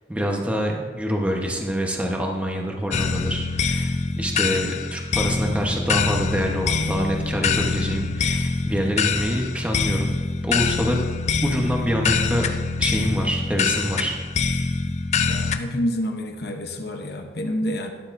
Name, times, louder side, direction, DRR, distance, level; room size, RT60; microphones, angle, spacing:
voice 1, 0.1-10.1 10.4-11.0 11.4-12.5 12.8-14.2, equal, 5° right, 0 dB, 1.0 m, -26 dB
sound 1, 2.9-15.6, left 4 dB, 35° left, 0.5 m, -24 dB
voice 2, 15.2-17.9, equal, 60° left, 4 dB, 0.8 m, -28 dB
12.5 x 11.5 x 2.6 m, 1.5 s
head